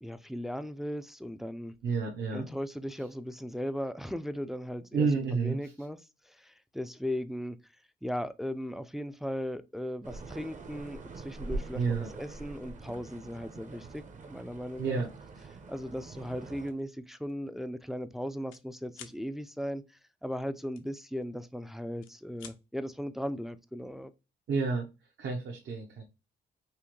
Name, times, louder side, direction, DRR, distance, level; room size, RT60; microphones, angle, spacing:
voice 1, 0.0-1.7 2.3-6.0 6.3-7.6 8.0-15.0 15.7-24.1, equal, ahead, 0.4 m, -37 dB
voice 2, 1.8-2.5 4.9-5.6 11.7-12.1 14.8-15.1 24.5-24.9 25.2-26.1, right 4 dB, 65° right, 1.1 m, -30 dB
sound 1, 10.0-16.7, right 3 dB, 40° right, 0.9 m, -43 dB
sound 2, 16.6-16.8 17.3-17.5 17.7-18.6 18.9-19.2 20.8-21.5 21.9-22.6, left 9 dB, 85° left, 0.7 m, -51 dB
5.6 x 2.2 x 3.1 m
cardioid pair, 90°, 20 cm